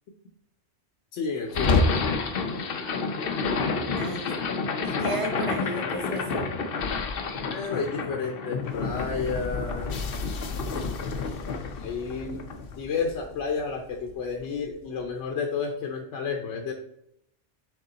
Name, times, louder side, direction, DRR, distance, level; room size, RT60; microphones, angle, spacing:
voice 1, 1.1-1.8 7.5-10.0 11.8-12.5 12.7-16.7, left 5 dB, 85° left, 3 dB, 1.0 m, -31 dB
sound 1, 1.5-13.7, left 4 dB, 60° left, 0.9 m, -29 dB
voice 2, 3.9-4.3 4.8-6.4, right 1 dB, 30° right, 3 dB, 1.0 m, -34 dB
7.0 x 3.6 x 3.9 m, 0.78 s
omnidirectional pair, 1.2 m